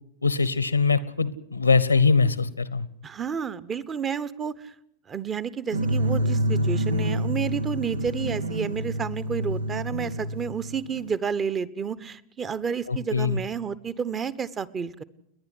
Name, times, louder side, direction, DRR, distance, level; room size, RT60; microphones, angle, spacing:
voice 1, 0.2-2.9 12.9-13.4, left 4 dB, 80° left, 18 dB, 1.2 m, -22 dB
voice 2, 3.0-4.7 5.1-15.0, right 6 dB, 20° right, 18 dB, 1.1 m, -30 dB
sound 1, 5.7-11.1, right 1 dB, 75° right, 1.0 m, -27 dB
29.5 x 11.0 x 9.9 m, 0.76 s
figure-of-eight pair, 90°, 0 cm